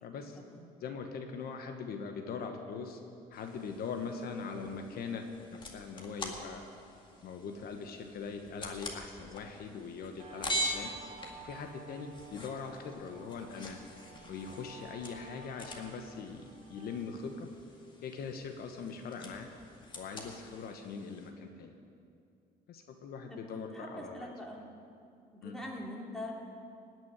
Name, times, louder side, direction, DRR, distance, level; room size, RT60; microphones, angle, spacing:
voice 1, 0.0-3.0 3.3-6.6 7.2-10.9 11.4-13.8 14.3-17.5 18.0-19.5 19.9-21.7 22.7-24.3 25.4-25.6, left 5 dB, 65° left, 5 dB, 1.2 m, -41 dB
sound 1, 3.3-21.3, equal, 30° left, 2.1 m, -44 dB
Guitar, 10.2-17.2, right 3 dB, 40° right, 4.6 m, -53 dB
voice 2, 23.5-24.7 25.3-26.4, left 1 dB, ahead, -2 dB, 2.7 m, -43 dB
17.0 x 6.2 x 9.8 m, 2.5 s
cardioid pair, 110°, 17 cm